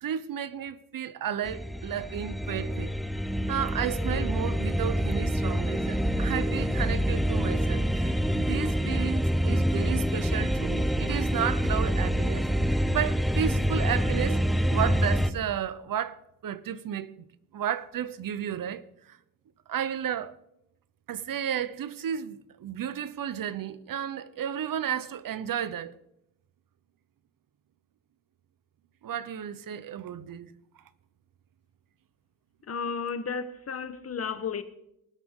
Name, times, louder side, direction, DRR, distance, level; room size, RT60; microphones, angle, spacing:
voice 1, 0.0-2.9 3.5-14.4 14.7-17.3 17.5-19.2 19.7-20.3 21.1-25.9 29.0-30.5, right 9 dB, 70° right, 0.8 m, -33 dB
sound 1, 1.4-15.3, equal, ahead, 0.7 m, -26 dB
voice 2, 32.7-34.6, left 6 dB, 45° left, 1.1 m, -33 dB
19.5 x 11.0 x 3.7 m
wide cardioid pair, 150°, 34 cm